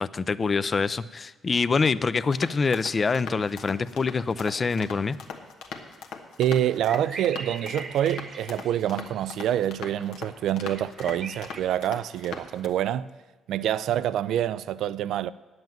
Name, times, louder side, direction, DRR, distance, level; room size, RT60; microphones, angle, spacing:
voice 1, 0.0-5.2, left 4 dB, 35° left, 0.4 m, -25 dB
sound 1, 2.3-12.7, left 5 dB, 90° left, 1.2 m, -41 dB
voice 2, 6.4-13.1 13.5-15.3, right 11 dB, 80° right, 0.3 m, -26 dB
sound 2, 6.8-9.8 10.1-11.6, right 4 dB, 45° right, 1.0 m, -41 dB
9.2 x 7.9 x 9.1 m
cardioid pair, 90°, 0 cm